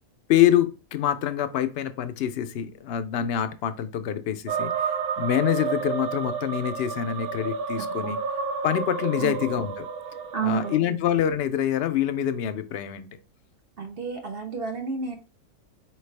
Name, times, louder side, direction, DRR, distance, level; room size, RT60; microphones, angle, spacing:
voice 1, 0.3-8.2 8.6-9.9 10.4-13.1, left 10 dB, 65° left, 9 dB, 0.6 m, -25 dB
sound 1, 4.5-10.8, right 6 dB, 90° right, 1.1 m, -31 dB
voice 2, 9.2-9.5 10.3-11.0 13.8-15.2, right 6 dB, 50° right, 4 dB, 0.8 m, -31 dB
4.7 x 3.3 x 3.2 m, 0.32 s
omnidirectional pair, 1.5 m